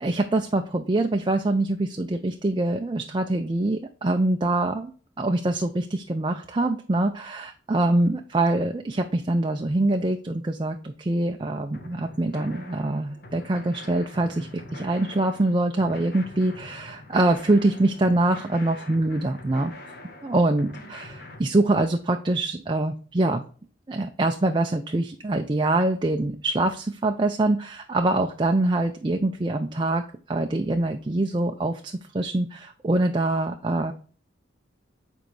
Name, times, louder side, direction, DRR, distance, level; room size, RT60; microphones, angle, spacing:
voice 1, 0.0-4.9 5.2-19.7 20.2-23.4 23.9-33.9, right 2 dB, 25° right, 4 dB, 0.4 m, -24 dB
sound 1, 11.7-21.4, left 1 dB, 50° left, 1.1 m, -44 dB
7.3 x 4.5 x 3.2 m, 0.40 s
head